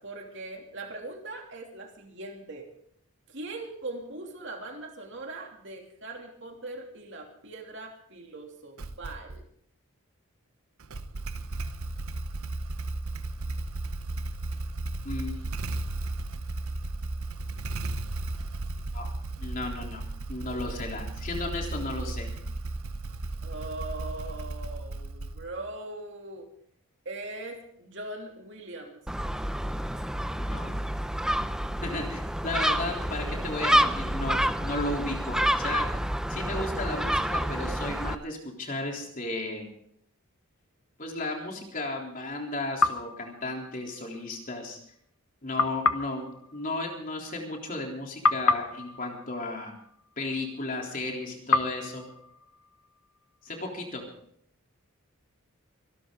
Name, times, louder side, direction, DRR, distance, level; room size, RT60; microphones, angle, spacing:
voice 1, 0.0-2.7 3.3-9.4 23.4-26.5 27.0-29.0, right 2 dB, 55° right, 2 dB, 2.9 m, -40 dB
Motorcycle / Engine starting, 8.8-9.4 10.8-25.7, right 2 dB, 85° right, 0.9 m, -35 dB
voice 2, 15.0-15.4 18.9-19.1 19.4-20.0 20.3-22.3 30.4-30.8 31.2-31.4 31.8-35.9 36.3-39.7 41.0-44.8 45.4-49.7 50.2-52.1 53.4-54.0, left 2 dB, 40° left, 1 dB, 3.5 m, -34 dB
Gull seagull, 29.1-38.1, right 1 dB, 5° right, 0.5 m, -28 dB
sound 1, 42.8-44.2 45.6-47.9 48.2-50.5 51.5-53.4, left 3 dB, 90° left, 1.0 m, -30 dB
25.5 x 12.5 x 3.9 m, 0.66 s
head